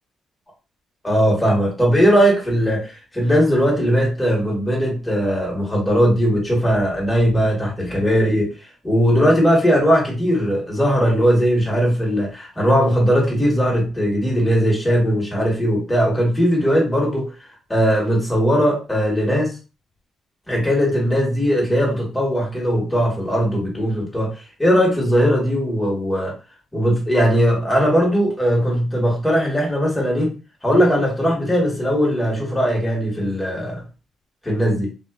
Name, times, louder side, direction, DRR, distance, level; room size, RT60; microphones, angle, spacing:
voice 1, 1.0-8.5 8.8-17.3 17.7-19.6 20.5-26.3 26.7-33.8 34.4-34.9, equal, 10° left, -2 dB, 1.2 m, -19 dB
2.5 x 2.2 x 2.3 m, 0.33 s
cardioid pair, 90°, 0 cm